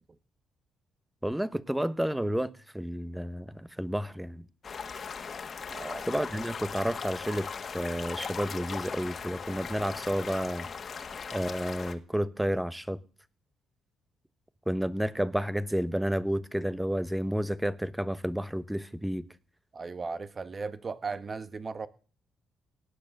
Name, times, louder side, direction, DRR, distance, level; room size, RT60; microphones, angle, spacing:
voice 1, 1.2-4.4 6.0-7.5 7.7-10.7 11.3-13.0 14.7-19.2, equal, 5° right, 1.1 m, -31 dB
sound 1, 4.6-11.9, left 6 dB, 45° left, 1.8 m, -38 dB
voice 2, 5.7-6.1 19.7-21.9, right 4 dB, 35° right, 1.4 m, -36 dB
18.0 x 10.0 x 6.6 m
cardioid pair, 90°, 0 cm